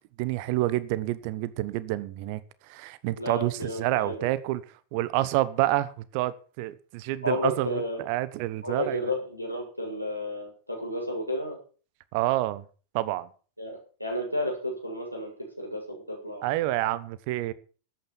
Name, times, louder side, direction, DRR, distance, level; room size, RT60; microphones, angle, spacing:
voice 1, 0.2-9.0 12.1-12.7 12.9-13.3 16.4-17.5, right 16 dB, 45° right, 1.1 m, -28 dB
voice 2, 3.2-4.3 7.2-8.0 8.6-11.6 13.6-15.3 15.6-16.5, left 1 dB, 90° left, 6.7 m, -32 dB
13.0 x 9.2 x 7.3 m
figure-of-eight pair, 90°, 0 cm